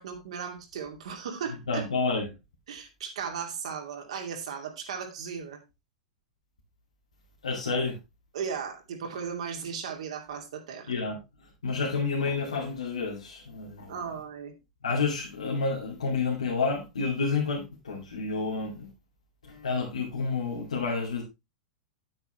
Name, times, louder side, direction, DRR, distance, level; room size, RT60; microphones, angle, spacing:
voice 1, 0.0-1.9 2.7-5.6 8.3-10.9 13.9-14.5, right 6 dB, 65° right, 2.5 m, -36 dB
voice 2, 1.7-2.2 7.4-8.0 10.9-11.2 11.6-13.9 14.8-18.9 19.5-21.2, left 4 dB, 80° left, 2.4 m, -29 dB
9.4 x 8.8 x 3.1 m
figure-of-eight pair, 100°, 4 cm